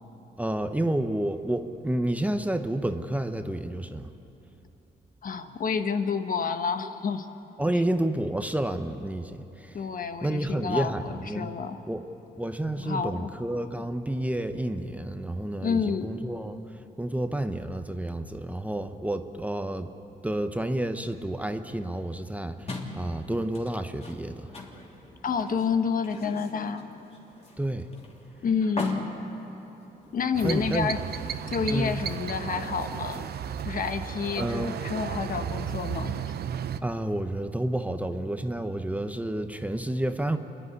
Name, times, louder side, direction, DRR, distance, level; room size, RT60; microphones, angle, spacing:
voice 1, 0.4-4.1 7.6-9.8 10.2-11.5 11.9-12.0 12.4-16.6 17.0-19.9 20.2-24.5 27.6-27.9 30.4-30.9 31.7-32.0 34.4-34.8 36.8-40.4, right 1 dB, 10° right, 8 dB, 1.0 m, -30 dB
voice 2, 5.2-7.3 9.7-11.8 12.8-13.3 15.6-16.1 25.2-26.8 28.4-29.0 30.1-31.0 31.5-33.3 33.6-36.2, left 5 dB, 50° left, 8 dB, 1.3 m, -29 dB
sound 1, 22.7-30.4, left 2 dB, 35° left, 3.0 m, -41 dB
sound 2, 30.3-36.8, right 8 dB, 60° right, 0.8 m, -34 dB
28.0 x 11.0 x 9.8 m, 3.0 s
cardioid pair, 85°, 18 cm